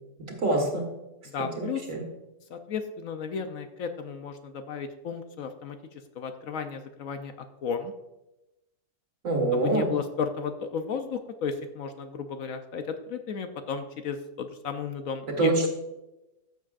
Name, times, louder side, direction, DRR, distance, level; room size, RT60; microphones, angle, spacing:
voice 1, 0.4-0.8 1.4-2.0 9.2-9.9 15.4-15.7, right 2 dB, 55° right, 2 dB, 2.1 m, -25 dB
voice 2, 1.3-1.9 2.5-5.8 6.1-7.9 9.5-15.6, left 6 dB, 65° left, 7 dB, 1.0 m, -34 dB
14.0 x 7.3 x 2.5 m, 0.96 s
omnidirectional pair, 1.6 m